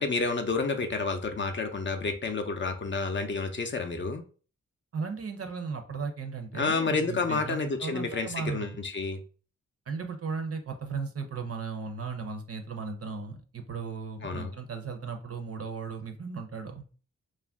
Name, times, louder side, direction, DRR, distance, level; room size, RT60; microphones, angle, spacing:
voice 1, 0.0-4.2 6.5-9.2 14.2-14.5, left 4 dB, 35° left, 5 dB, 0.5 m, -30 dB
voice 2, 4.9-8.7 9.9-16.8, right 5 dB, 45° right, 6 dB, 0.6 m, -36 dB
2.4 x 2.1 x 3.5 m, 0.38 s
cardioid pair, 55°, 33 cm